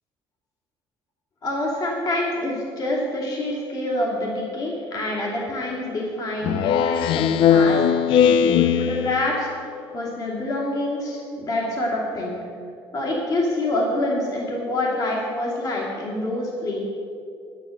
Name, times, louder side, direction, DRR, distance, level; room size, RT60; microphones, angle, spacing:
voice 1, 1.4-8.0 8.5-9.5 9.9-12.4 12.9-16.8, left 1 dB, 45° left, -4 dB, 2.6 m, -26 dB
Speech synthesizer, 6.4-9.5, left 8 dB, 70° left, 0.5 m, -19 dB
11.0 x 11.0 x 6.5 m, 2.7 s
cardioid pair, 150°, 9 cm